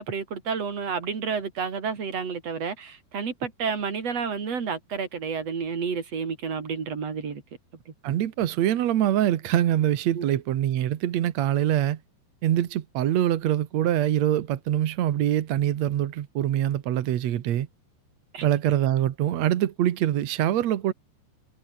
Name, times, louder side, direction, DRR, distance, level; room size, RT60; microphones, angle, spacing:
voice 1, 0.0-7.4 7.9-8.0 10.1-10.2 18.3-18.5, right 6 dB, 40° right, 4.1 m, -30 dB
voice 2, 8.0-12.0 12.4-17.7 18.4-20.9, right 12 dB, 80° right, 1.5 m, -24 dB
omnidirectional pair, 5.1 m